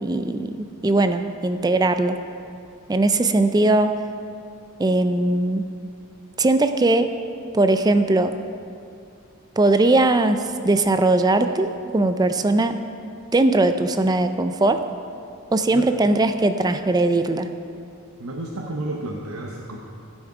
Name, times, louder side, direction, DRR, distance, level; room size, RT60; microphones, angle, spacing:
voice 1, 0.0-2.2 2.9-3.9 4.8-5.7 6.4-7.1 7.5-8.3 9.6-12.8 13.3-14.8 15.5-17.5, right 2 dB, 20° right, 9 dB, 0.4 m, -20 dB
voice 2, 18.2-19.8, right 1 dB, 80° right, -1 dB, 0.9 m, -31 dB
15.5 x 6.3 x 4.8 m, 2.5 s
head